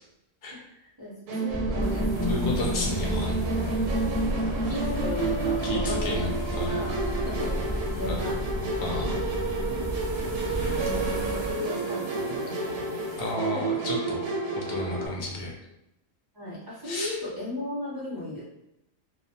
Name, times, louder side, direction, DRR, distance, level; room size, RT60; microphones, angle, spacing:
voice 1, 1.0-2.0 2.4-2.7 3.5-3.9 4.4-8.4 9.0-9.3 10.7-13.8 16.3-18.4, left 2 dB, 30° right, -9 dB, 0.4 m, -37 dB
Musical instrument, 1.3-15.1, right 2 dB, 85° right, 1.0 m, -30 dB
sound 1, 1.5-11.5, equal, 5° left, 0.8 m, -32 dB
sound 2, 1.8-13.3, right 2 dB, 65° right, 0.7 m, -41 dB
voice 2, 2.3-3.4 5.6-6.3 6.6-6.8 8.1-8.3 8.8-9.2 10.5-11.0 13.2-14.2 14.5-15.5 16.8-17.1, left 1 dB, 65° left, -1 dB, 0.6 m, -32 dB
2.2 x 2.1 x 2.7 m, 0.88 s
omnidirectional pair, 1.4 m